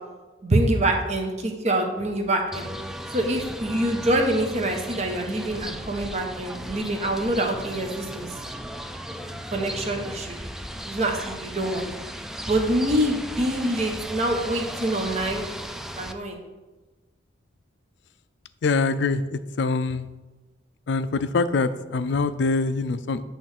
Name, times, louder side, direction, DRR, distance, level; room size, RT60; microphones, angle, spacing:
voice 1, 0.4-2.7 3.1-8.3 9.5-10.4 10.8-11.8 12.5-15.5 16.0-16.4, right 1 dB, 40° right, 3 dB, 1.0 m, -25 dB
sound 1, 2.5-16.1, equal, ahead, 0.3 m, -36 dB
voice 2, 18.6-20.1 20.9-23.2, left 4 dB, 70° left, 13 dB, 0.4 m, -24 dB
8.5 x 3.2 x 6.5 m, 1.2 s
head